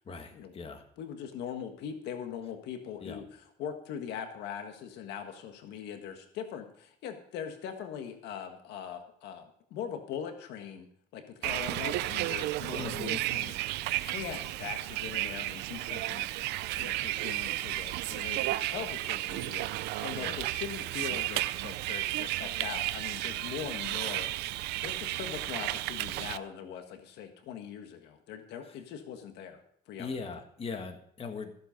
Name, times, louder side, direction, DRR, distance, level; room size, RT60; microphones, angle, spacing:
voice 1, 0.0-0.8 3.0-3.2 12.7-13.2 20.2-20.5 28.6-28.8 30.0-31.5, left 4 dB, 35° left, 6 dB, 1.5 m, -40 dB
voice 2, 1.0-3.2 3.6-16.3 16.7-24.4 24.8-29.6 29.9-30.1, left 8 dB, 85° left, 6 dB, 1.6 m, -41 dB
Bus, 11.4-26.4, right 17 dB, 90° right, 0.5 m, -33 dB
14.5 x 8.1 x 5.1 m, 0.65 s
cardioid pair, 110°, 17 cm